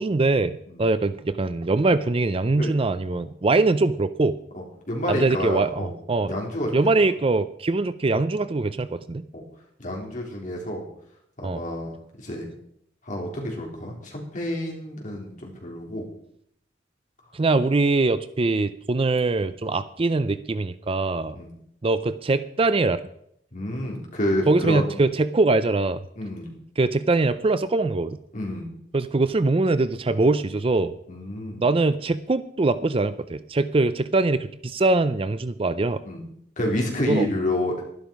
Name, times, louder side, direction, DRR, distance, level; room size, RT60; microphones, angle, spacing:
voice 1, 0.0-4.4 5.1-6.3 6.7-9.3 11.4-11.6 17.3-21.4 21.8-23.0 24.5-26.0 26.8-28.2 28.9-30.9 31.6-36.0 37.1-37.3, right 3 dB, 30° right, 14 dB, 0.5 m, -22 dB
voice 2, 4.5-5.9 6.3-6.8 9.3-9.4 9.8-10.9 11.4-12.5 13.0-16.1 21.3-21.5 23.5-24.9 26.2-26.5 28.3-28.7 31.1-31.6 36.0-36.2 36.6-37.8, left 1 dB, 45° left, 0 dB, 3.8 m, -29 dB
12.0 x 11.5 x 5.3 m, 0.71 s
head